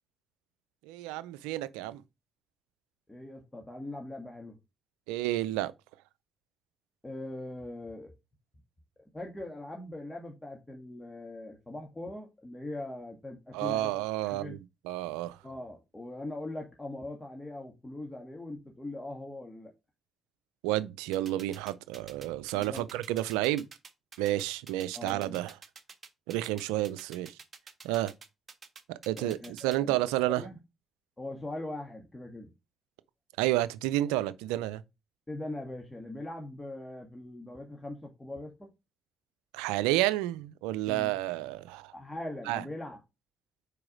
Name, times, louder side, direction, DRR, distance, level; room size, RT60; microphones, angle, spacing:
voice 1, 0.8-2.0 5.1-5.7 13.5-15.4 20.6-23.7 24.2-25.5 26.3-27.4 27.8-28.1 28.9-30.5 33.4-34.8 39.5-41.9 42.5-42.6, right 15 dB, 85° right, 0.4 m, -30 dB
voice 2, 3.1-4.5 7.0-8.1 9.1-13.9 14.2-14.5 15.4-19.7 22.5-23.0 24.9-25.4 29.2-30.0 30.4-30.6 31.2-32.5 35.3-38.7 40.9-41.1 41.9-43.0, left 1 dB, 15° left, 1.6 m, -41 dB
sound 1, 21.1-29.8, right 5 dB, 40° right, 1.4 m, -48 dB
4.8 x 4.6 x 4.9 m
hypercardioid pair, 55°, 0 cm